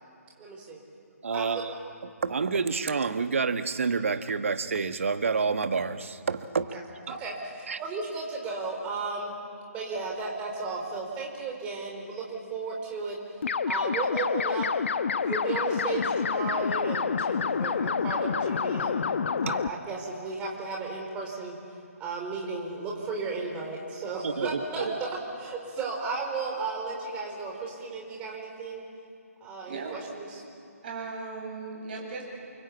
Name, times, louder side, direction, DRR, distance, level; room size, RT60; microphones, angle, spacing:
voice 1, 0.4-0.8 1.3-1.8 6.7-9.3 9.7-13.2 13.7-14.7 15.2-19.0 19.4-21.6 22.0-28.8 29.4-30.4, right 3 dB, 15° right, -1 dB, 4.8 m, -34 dB
voice 2, 1.2-1.7 2.2-6.7 7.7-7.8 19.5-19.6 24.2-24.9, right 5 dB, 55° right, 10 dB, 1.5 m, -28 dB
sound 1, 13.4-19.7, left 5 dB, 50° left, 1.0 m, -28 dB
voice 3, 30.8-32.3, right 4 dB, 35° right, 0 dB, 7.7 m, -37 dB
29.0 x 24.0 x 8.6 m, 2.5 s
figure-of-eight pair, 145°, 9 cm